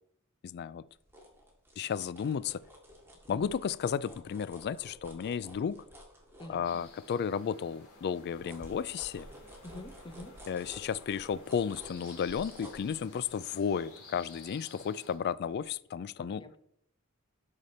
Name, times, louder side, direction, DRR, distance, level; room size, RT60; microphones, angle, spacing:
voice 1, 0.4-0.9 1.8-2.6 3.3-5.8 6.5-9.3 10.5-16.4, left 7 dB, 50° left, 0.3 m, -33 dB
sound 1, 0.9-7.2 7.6-15.1 15.5-15.6, equal, 10° right, 1.9 m, -53 dB
voice 2, 6.4-6.8 9.6-10.3 16.4-16.6, left 1 dB, 20° left, 0.8 m, -46 dB
sound 2, 6.6-15.2, left 3 dB, 85° left, 2.6 m, -54 dB
12.5 x 5.0 x 4.2 m
head